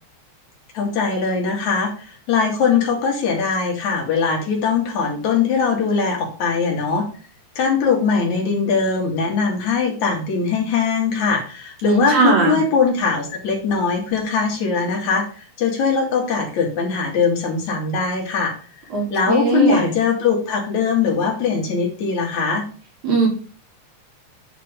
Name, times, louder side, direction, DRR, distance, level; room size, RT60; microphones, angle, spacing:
voice 1, 0.7-7.1 7.6-18.5 19.1-22.7, left 5 dB, 75° left, 1 dB, 3.5 m, -21 dB
voice 2, 11.8-12.6 18.9-19.9 23.0-23.3, right 4 dB, 80° right, -1 dB, 4.3 m, -19 dB
9.1 x 4.6 x 5.1 m, 0.39 s
omnidirectional pair, 3.3 m